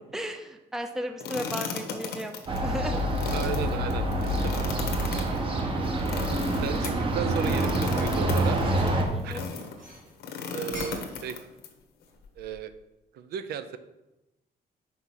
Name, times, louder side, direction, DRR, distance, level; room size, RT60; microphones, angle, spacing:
voice 1, 0.1-2.3 2.6-3.0 6.0-6.1 9.1-9.5, equal, 5° right, 6 dB, 0.5 m, -35 dB
sound 1, 1.2-9.8 10.2-11.7, left 5 dB, 85° left, 1.1 m, -36 dB
sound 2, 2.5-9.0, right 1 dB, 35° right, 0.9 m, -27 dB
voice 2, 3.3-4.1 4.4-4.5 5.1-5.3 6.6-8.6 9.2-9.4 10.5-11.4 12.4-12.7 13.1-13.8, right 8 dB, 80° right, 12 dB, 0.5 m, -35 dB
sound 3, 7.2-7.8 8.2-9.1 9.5-11.5 11.7-12.7, equal, 55° right, 2.6 m, -45 dB
5.8 x 4.7 x 5.8 m, 0.97 s
cardioid pair, 180°, 16 cm